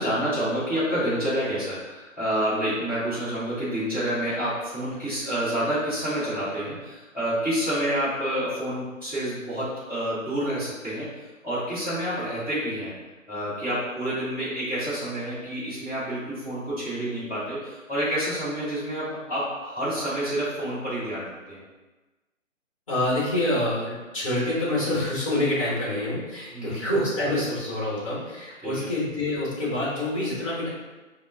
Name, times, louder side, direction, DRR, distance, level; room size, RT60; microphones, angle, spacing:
voice 1, 0.0-11.1 11.4-12.9 13.3-21.6 26.5-26.8 28.6-28.9, equal, 5° left, -17 dB, 1.0 m, -28 dB
voice 2, 22.9-30.7, left 1 dB, 25° left, -7 dB, 1.2 m, -26 dB
4.0 x 2.1 x 3.5 m, 1.2 s
figure-of-eight pair, 145°, 40 cm